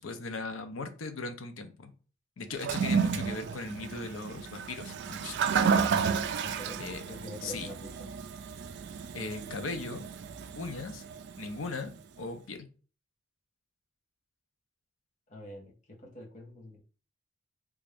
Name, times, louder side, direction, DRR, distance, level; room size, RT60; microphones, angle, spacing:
voice 1, 0.0-1.9 2.4-5.4 6.8-7.1 7.4-7.7 9.1-10.0 10.6-11.0 11.4-11.9 12.2-12.7, left 3 dB, 75° left, 7 dB, 0.6 m, -38 dB
Toilet flush, 2.5-11.8, right 6 dB, 60° right, 0.3 m, -32 dB
voice 2, 6.4-6.8 7.1-8.1 15.3-15.7 16.0-16.8, left 1 dB, 35° left, -2 dB, 1.1 m, -45 dB
3.4 x 2.5 x 3.4 m, 0.37 s
head